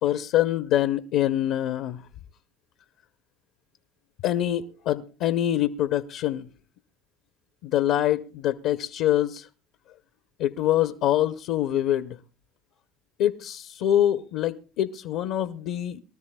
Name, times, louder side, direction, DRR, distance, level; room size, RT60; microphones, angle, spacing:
voice 1, 0.0-2.0 4.2-6.5 7.6-9.5 10.4-12.2 13.2-16.0, left 12 dB, 70° left, 0.6 m, -25 dB
23.5 x 13.0 x 2.2 m
supercardioid pair, 85°, 0 cm